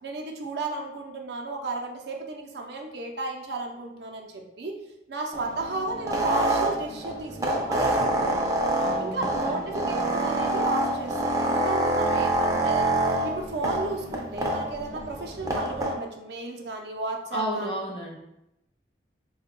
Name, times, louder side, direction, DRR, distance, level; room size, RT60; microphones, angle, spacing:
voice 1, 0.0-4.8 5.1-8.4 9.0-9.6 9.9-12.9 13.2-17.7, right 2 dB, 70° right, 1 dB, 0.6 m, -34 dB
sound 1, 5.3-15.9, right 1 dB, 20° right, 0.5 m, -26 dB
voice 2, 8.8-10.2 17.3-18.2, equal, 30° left, 0 dB, 0.6 m, -34 dB
4.4 x 2.3 x 3.6 m, 0.89 s
head